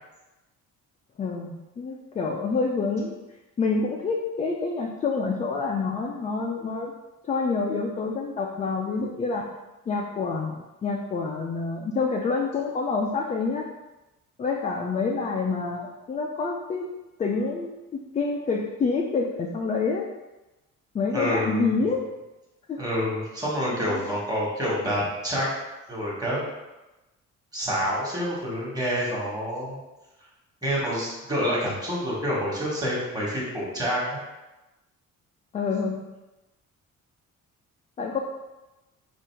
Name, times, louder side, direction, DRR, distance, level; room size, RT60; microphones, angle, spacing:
voice 1, 1.2-3.2 3.6-6.9 7.3-9.4 9.9-13.7 14.4-16.8 17.2-20.0 20.9-22.1 22.7-22.8 23.8-24.0 35.5-36.0 38.0-38.2, left 4 dB, 25° left, 0 dB, 0.3 m, -27 dB
voice 2, 21.1-21.7 22.8-25.5 25.9-26.5 27.5-29.8 30.6-34.0, equal, 10° right, -6 dB, 1.4 m, -27 dB
4.5 x 2.5 x 4.5 m, 1.1 s
cardioid pair, 155°, 32 cm